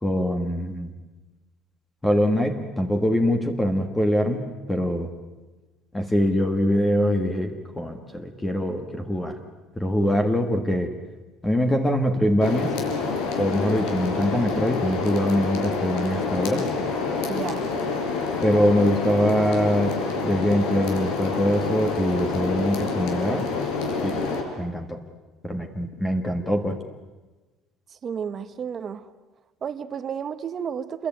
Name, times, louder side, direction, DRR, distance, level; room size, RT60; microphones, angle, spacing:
voice 1, 0.0-0.9 2.0-5.1 5.9-9.4 9.7-10.9 11.4-12.7 13.3-16.7 18.4-20.0 20.2-23.4 24.0-24.3 24.6-25.0 25.4-26.8, equal, 10° left, 5 dB, 1.6 m, -23 dB
sound 1, 12.4-24.4, left 4 dB, 80° left, 5.4 m, -27 dB
voice 2, 17.3-17.6 28.0-29.1 29.6-31.1, right 7 dB, 30° right, 12 dB, 1.2 m, -31 dB
28.0 x 21.5 x 9.2 m, 1.2 s
cardioid pair, 170°, 0 cm